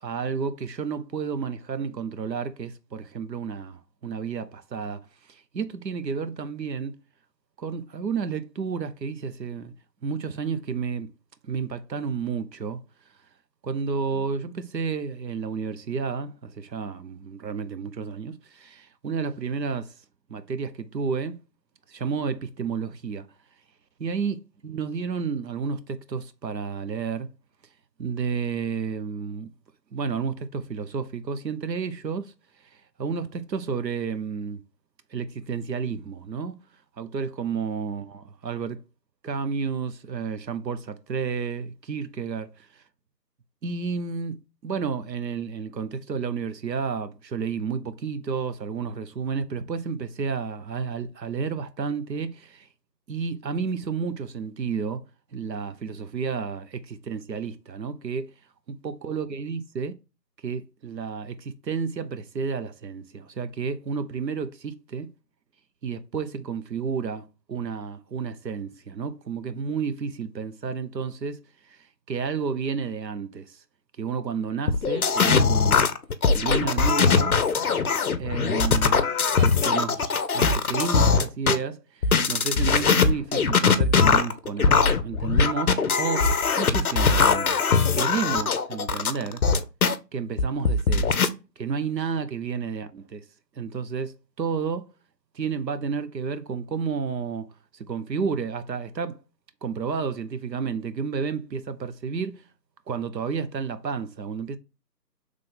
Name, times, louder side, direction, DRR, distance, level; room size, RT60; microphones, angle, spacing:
voice 1, 0.0-5.0 5.3-7.0 7.6-9.7 10.0-11.1 11.5-12.8 13.6-19.9 20.3-21.4 21.9-23.3 24.0-27.3 28.0-29.5 29.9-32.3 33.0-34.6 35.1-36.6 37.0-38.8 39.2-42.7 43.6-52.7 53.1-55.0 55.3-58.3 58.7-59.9 60.4-65.1 65.8-71.4 71.7-71.8 72.1-73.6 74.0-75.9 76.3-77.4 78.2-79.1 79.4-86.3 86.6-87.6 87.9-89.4 90.1-91.2 91.6-93.2 93.6-94.9 95.3-97.5 97.7-99.2 99.6-102.4 102.9-104.6, right 5 dB, 85° right, 0.7 m, -31 dB
sound 1, 74.7-81.6 82.0-89.9 90.4-91.3, left 5 dB, 60° left, 0.6 m, -21 dB
3.7 x 3.2 x 3.8 m
figure-of-eight pair, 165°, 50 cm